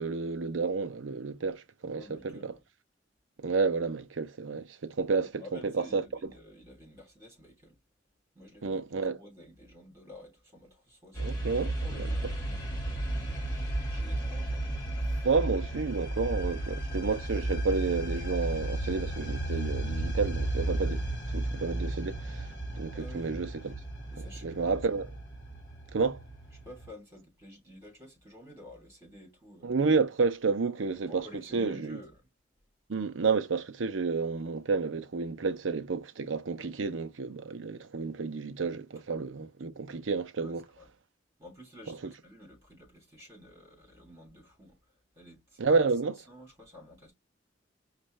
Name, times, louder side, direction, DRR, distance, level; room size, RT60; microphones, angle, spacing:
voice 1, 0.0-2.5 3.4-6.0 8.6-9.2 11.2-12.1 15.2-21.0 21.3-22.4 22.7-23.7 24.2-25.1 25.9-26.2 29.6-31.3 31.5-32.0 32.9-40.6 41.9-42.0 45.6-46.1, right 4 dB, 80° right, 0.6 m, -30 dB
voice 2, 1.9-2.6 5.2-7.8 8.3-14.7 15.0-15.2 22.9-23.3 24.1-24.9 26.6-29.7 30.9-32.3 40.4-40.9 41.4-44.8 45.1-47.1, left 1 dB, 15° right, 3.2 m, -52 dB
sound 1, 11.1-26.9, right 1 dB, 20° left, 1.9 m, -34 dB
5.2 x 2.5 x 3.2 m
head